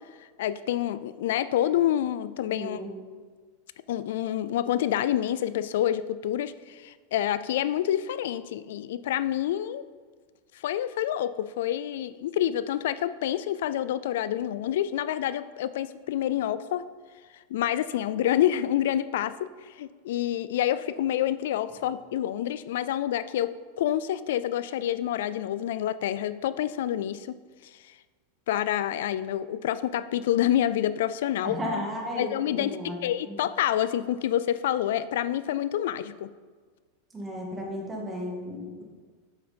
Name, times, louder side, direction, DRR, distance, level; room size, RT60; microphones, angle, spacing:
voice 1, 0.4-2.8 3.9-9.8 10.5-16.8 17.5-27.3 27.7-27.9 28.5-31.6 32.2-36.3, left 11 dB, 75° left, 15 dB, 0.3 m, -28 dB
voice 2, 2.5-2.9 31.4-33.0 33.3-33.4 37.1-38.8, equal, 15° right, -2 dB, 2.1 m, -34 dB
8.6 x 6.7 x 4.3 m, 1.5 s
supercardioid pair, 135°, 0 cm